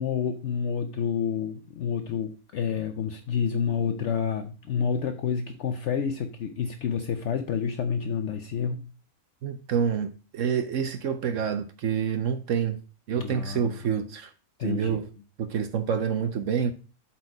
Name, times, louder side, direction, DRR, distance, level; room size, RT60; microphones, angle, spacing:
voice 1, 0.0-8.9 13.1-13.8 14.6-15.0, left 7 dB, 60° left, 0.9 m, -29 dB
voice 2, 9.4-12.8 13.1-14.3 14.6-15.1 15.4-16.7, right 7 dB, 65° right, 1.0 m, -27 dB
8.1 x 4.4 x 4.7 m
omnidirectional pair, 1.5 m